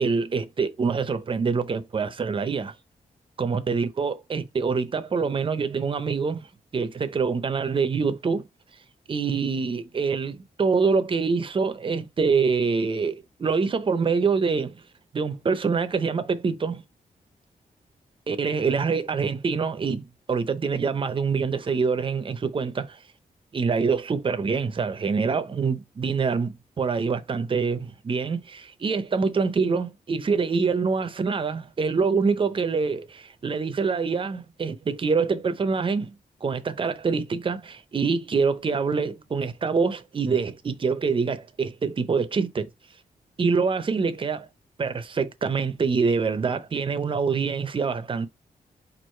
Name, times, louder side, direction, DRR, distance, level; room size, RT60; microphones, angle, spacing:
voice 1, 0.0-2.7 3.4-6.4 6.7-8.4 9.1-14.8 15.1-16.8 18.3-23.0 23.5-36.1 36.4-42.7 43.4-44.5 44.8-48.3, right 5 dB, 35° right, 0.6 m, -25 dB
4.7 x 2.5 x 4.3 m
wide cardioid pair, 140°, 15 cm